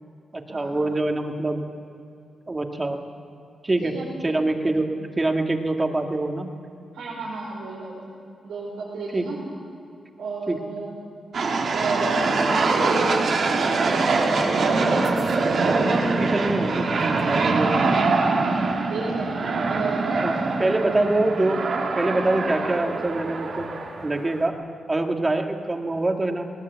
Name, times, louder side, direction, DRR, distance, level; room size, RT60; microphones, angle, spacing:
voice 1, 0.3-1.6 2.5-3.0 3.6-3.9 4.2-4.8 5.2-6.5 9.1-9.2 10.5-10.6 15.9-17.9 20.2-21.6 21.9-23.7 24.0-24.5 24.9-26.4, right 2 dB, 25° right, 3 dB, 2.2 m, -24 dB
voice 2, 6.9-8.1 8.4-9.3 10.2-11.0 11.7-14.4 17.8-18.0 18.9-20.1 20.8-21.1, right 3 dB, 90° right, -6 dB, 5.3 m, -32 dB
sound 1, 11.3-24.5, right 3 dB, 65° right, 2.5 m, -23 dB
19.5 x 19.0 x 8.3 m, 2.6 s
cardioid pair, 70°, 0 cm